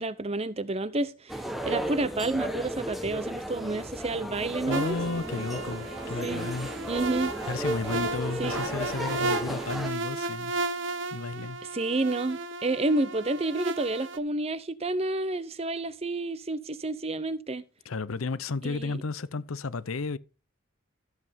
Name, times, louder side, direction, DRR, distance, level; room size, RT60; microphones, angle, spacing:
voice 1, 0.0-5.0 6.2-6.4 6.9-7.3 8.4-8.6 11.7-17.6 18.6-19.0, right 2 dB, 30° right, 0.7 m, -30 dB
sound 1, 1.3-9.9, right 1 dB, ahead, 1.0 m, -35 dB
voice 2, 4.7-6.7 7.5-10.5 11.1-11.6 17.9-20.2, left 3 dB, 85° left, 0.7 m, -33 dB
sound 2, 4.7-14.2, right 2 dB, 60° right, 0.8 m, -34 dB
14.0 x 7.7 x 3.6 m
head